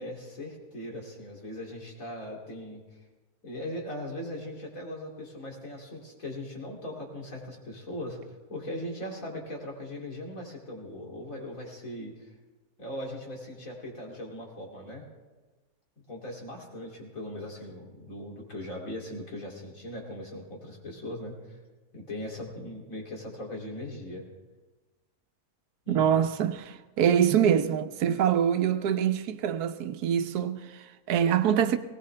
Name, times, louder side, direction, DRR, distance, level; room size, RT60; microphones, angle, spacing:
voice 1, 0.0-3.0 3.4-12.3 12.8-15.0 16.1-21.6 21.9-24.2 25.8-26.1, left 1 dB, 60° left, 3.2 m, -39 dB
voice 2, 25.9-31.8, right 9 dB, 90° right, 1.3 m, -25 dB
19.5 x 18.5 x 3.3 m
omnidirectional pair, 1.6 m